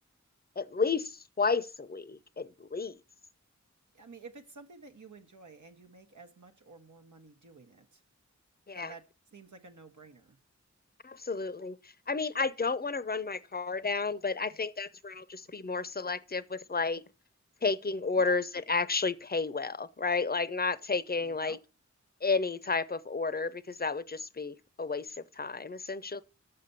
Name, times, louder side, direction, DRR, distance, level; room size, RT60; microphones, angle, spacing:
voice 1, 0.6-3.0 8.7-8.9 11.0-17.0 17.6-21.6 22.2-26.2, left 4 dB, 35° left, 0.5 m, -32 dB
voice 2, 3.9-8.0 8.7-9.0 9.3-10.4 18.2-18.4 21.2-21.6, right 4 dB, 90° right, 1.0 m, -51 dB
6.8 x 5.5 x 6.8 m
wide cardioid pair, 50°, 29 cm